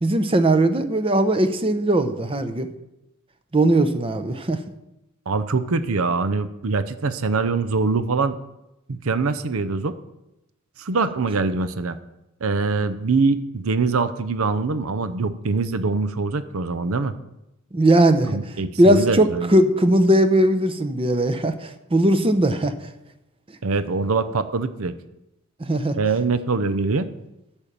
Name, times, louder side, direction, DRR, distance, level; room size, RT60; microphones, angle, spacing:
voice 1, 0.0-2.7 3.5-4.6 17.7-22.7 25.6-26.0, right 1 dB, 25° right, 9 dB, 0.7 m, -19 dB
voice 2, 5.3-8.3 8.9-9.9 10.8-12.0 12.4-17.1 18.3-19.5 23.6-24.9 25.9-27.1, right 4 dB, 70° right, 13 dB, 0.7 m, -23 dB
8.9 x 7.4 x 6.7 m, 0.91 s
head